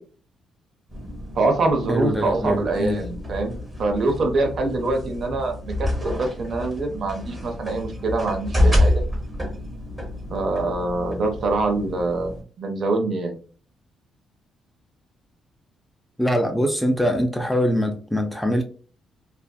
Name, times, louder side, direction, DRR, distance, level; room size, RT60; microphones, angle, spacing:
sound 1, 0.9-12.4, left 1 dB, 15° right, 0.9 m, -28 dB
voice 1, 1.3-9.0 10.3-13.4, right 2 dB, 55° right, 0.6 m, -24 dB
voice 2, 1.9-3.0 16.2-18.6, equal, 5° left, 0.4 m, -23 dB
2.5 x 2.3 x 2.3 m
cardioid pair, 90°, 0 cm